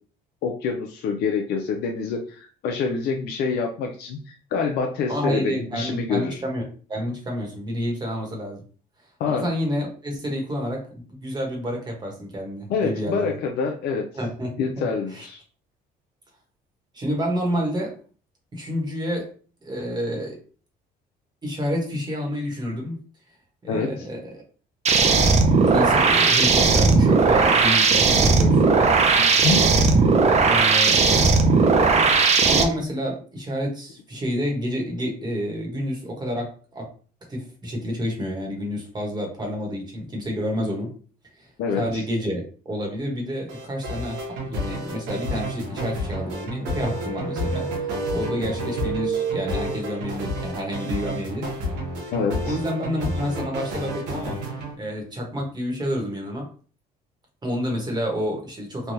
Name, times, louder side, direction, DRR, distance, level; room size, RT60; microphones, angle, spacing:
voice 1, 0.4-6.4 9.2-9.5 12.7-14.1 14.6-15.4 23.7-24.0 29.2-29.7 41.6-42.0 52.1-52.6, left 5 dB, 70° left, 2 dB, 0.5 m, -26 dB
voice 2, 5.1-8.6 9.2-13.4 14.2-15.3 16.9-18.0 18.5-19.3 19.6-20.4 21.4-23.0 23.6-24.4 25.6-28.9 30.4-31.1 32.4-36.9 37.3-40.9 41.4-41.5 41.8-51.5 52.4-56.5 57.4-58.9, equal, 25° right, 0 dB, 1.1 m, -29 dB
sound 1, 24.9-32.6, right 4 dB, 40° right, 0.5 m, -17 dB
sound 2, 43.5-54.7, equal, 90° right, 0.9 m, -31 dB
sound 3, 46.6-50.3, right 5 dB, ahead, 1.0 m, -31 dB
3.3 x 2.2 x 2.7 m, 0.40 s
cardioid pair, 110°, 17 cm